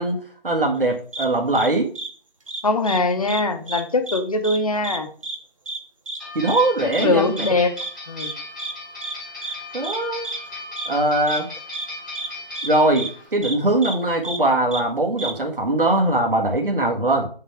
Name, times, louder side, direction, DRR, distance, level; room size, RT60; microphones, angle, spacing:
voice 1, 0.0-1.9 6.3-7.4 9.7-10.3 10.9-11.5 12.6-17.3, right 2 dB, 65° right, 1 dB, 1.7 m, -21 dB
sound 1, 1.1-1.3 1.5-1.7 1.9-2.1 2.5-3.0 3.3-3.4 3.7-4.2 4.4-4.6 4.8-5.0 5.2-5.4 5.7-5.8 6.1-6.2 6.5-6.6 6.9-7.0 7.4-7.5 7.8-7.9 8.2-8.3 8.6-8.7 9.0-9.1 9.4-9.5 9.8-10.0 10.2-10.4 10.8-10.9 11.3-11.4 11.7-11.9 12.1-12.3 12.5-12.7 13.0-13.1 13.4-13.5 13.8-13.9 14.2-14.4 14.7-14.8 15.2-15.3, right 2 dB, 35° right, 0.9 m, -30 dB
voice 2, 2.6-5.1 6.8-7.8 8.1-8.3, left 3 dB, 40° left, 7 dB, 0.9 m, -22 dB
sound 2, 6.2-13.3, left 2 dB, ahead, 1.3 m, -37 dB
8.3 x 3.8 x 4.4 m, 0.42 s
figure-of-eight pair, 160°, 29 cm